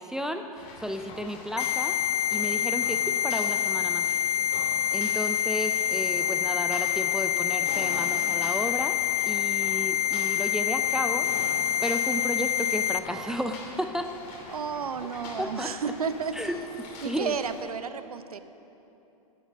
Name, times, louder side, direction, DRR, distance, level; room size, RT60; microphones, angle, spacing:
voice 1, 0.0-2.0 2.3-4.1 4.9-9.0 9.3-11.5 11.8-14.1 15.4-15.7 16.3-16.6 17.0-17.3, equal, 5° right, 6 dB, 0.4 m, -33 dB
sound 1, 0.5-17.6, left 3 dB, 40° left, 2.5 m, -44 dB
sound 2, 1.6-13.0, left 10 dB, 80° left, 0.6 m, -26 dB
voice 2, 14.5-16.3 17.0-18.4, right 6 dB, 80° right, 11 dB, 0.7 m, -32 dB
10.0 x 9.0 x 7.1 m, 3.0 s
hypercardioid pair, 110°, 19 cm